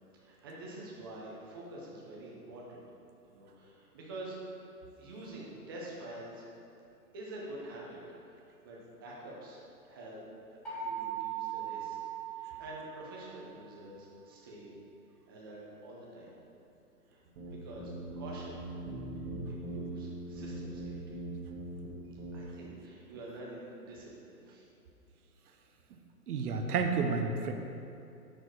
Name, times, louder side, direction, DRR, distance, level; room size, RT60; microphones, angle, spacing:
voice 1, 0.2-2.8 3.3-4.6 5.0-6.4 7.1-8.0 8.3-10.2 10.5-12.0 12.2-14.7 15.3-16.3 17.1-18.6 19.4-21.2 22.3-24.7, right 1 dB, 15° right, -4 dB, 0.5 m, -47 dB
sound 1, 10.6-13.4, right 9 dB, ahead, 1.0 m, -39 dB
sound 2, 17.3-21.9 22.2-22.4, right 1 dB, 40° right, 1.5 m, -41 dB
voice 2, 26.3-27.5, right 5 dB, 65° right, 5 dB, 0.9 m, -30 dB
6.5 x 4.5 x 4.8 m, 2.6 s
hypercardioid pair, 155°, 48 cm